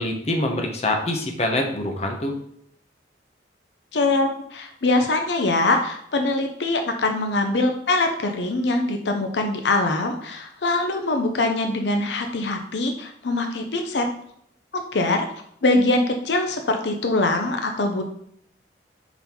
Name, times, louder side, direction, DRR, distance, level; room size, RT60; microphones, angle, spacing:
voice 1, 0.0-2.4, left 1 dB, 35° left, 3 dB, 0.9 m, -25 dB
voice 2, 3.9-14.1 14.9-15.3 15.6-18.0, left 2 dB, 80° left, 5 dB, 0.7 m, -23 dB
5.4 x 4.0 x 4.4 m, 0.67 s
head